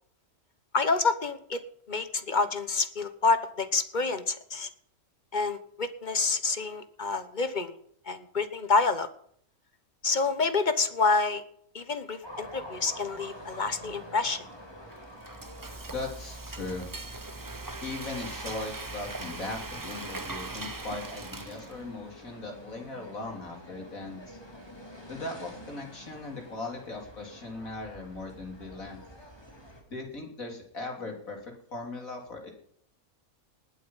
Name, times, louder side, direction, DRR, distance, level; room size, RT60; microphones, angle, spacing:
voice 1, 0.7-1.6 1.9-4.7 5.3-7.7 8.1-9.1 10.0-11.4 11.7-14.4, left 4 dB, 35° left, 11 dB, 1.1 m, -28 dB
sound 1, 12.2-29.8, equal, 15° left, 3.3 m, -48 dB
Frying (food), 14.9-22.0, right 2 dB, 20° right, 0.6 m, -40 dB
voice 2, 15.8-16.9 17.8-24.4 25.1-29.0 29.9-32.5, left 2 dB, 70° left, 2 dB, 3.7 m, -39 dB
19.5 x 8.6 x 5.6 m, 0.64 s
omnidirectional pair, 1.5 m